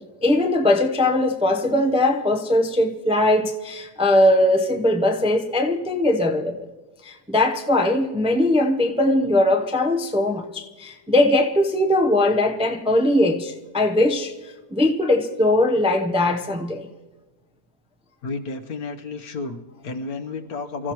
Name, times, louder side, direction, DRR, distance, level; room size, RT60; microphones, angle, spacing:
voice 1, 0.2-6.7 7.0-16.9, left 1 dB, 5° right, 0.5 m, -20 dB
voice 2, 18.2-20.9, left 3 dB, 70° left, 1.5 m, -32 dB
26.0 x 14.5 x 3.0 m
omnidirectional pair, 1.6 m